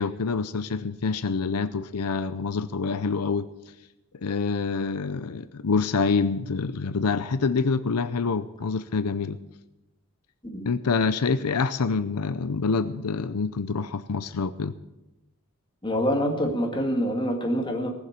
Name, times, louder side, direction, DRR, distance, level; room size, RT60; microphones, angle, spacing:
voice 1, 0.0-3.4 4.2-9.4 10.7-14.7, left 4 dB, 85° left, 13 dB, 0.6 m, -26 dB
voice 2, 15.8-17.9, equal, 20° left, 2 dB, 2.2 m, -26 dB
19.0 x 7.1 x 8.1 m, 0.95 s
head